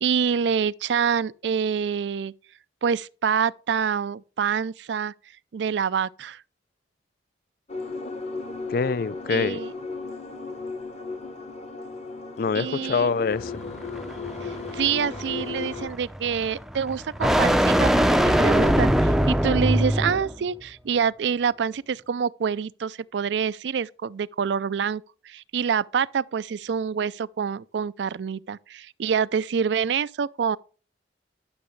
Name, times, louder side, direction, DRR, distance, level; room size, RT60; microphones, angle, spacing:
voice 1, 0.0-2.3 2.8-5.1 5.5-6.4 9.3-9.7 12.5-13.1 14.4-30.6, right 7 dB, 85° right, 0.4 m, -26 dB
sound 1, 7.7-15.9, left 4 dB, 40° left, 1.0 m, -35 dB
voice 2, 8.7-9.6 12.4-13.6, left 5 dB, 55° left, 0.4 m, -25 dB
sound 2, 13.3-20.4, equal, ahead, 0.5 m, -23 dB
11.5 x 7.0 x 3.2 m
head